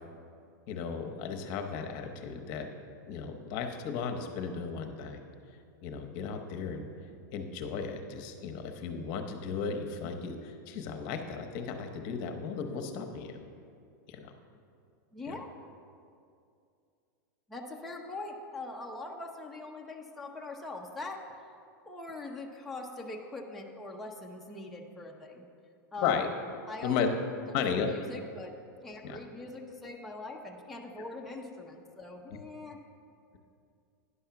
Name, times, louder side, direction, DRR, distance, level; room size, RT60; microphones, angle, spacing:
voice 1, 0.7-2.7 3.1-5.3 5.8-6.9 7.3-13.3 14.1-14.3 15.3-15.4 26.0-26.3 26.8-27.1 27.5-27.9 29.0-29.2, left 6 dB, 40° left, 5 dB, 0.8 m, -35 dB
voice 2, 15.1-15.5 17.5-21.2 21.9-25.4 25.9-26.3 26.7-27.0 27.5-28.5 28.8-32.8, left 2 dB, ahead, -2 dB, 0.6 m, -42 dB
9.9 x 5.6 x 5.8 m, 2.4 s
supercardioid pair, 150°, 11 cm